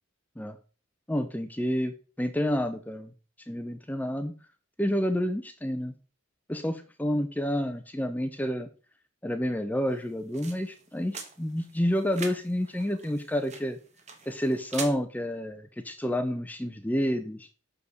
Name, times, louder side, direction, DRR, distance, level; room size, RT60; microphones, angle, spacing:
voice 1, 1.1-3.1 3.5-4.3 4.8-5.9 6.5-8.7 9.2-13.8 14.3-17.5, equal, 10° left, 9 dB, 0.5 m, -29 dB
sound 1, 9.9-14.9, right 5 dB, 35° right, 1.1 m, -43 dB
6.5 x 5.1 x 4.1 m, 0.36 s
head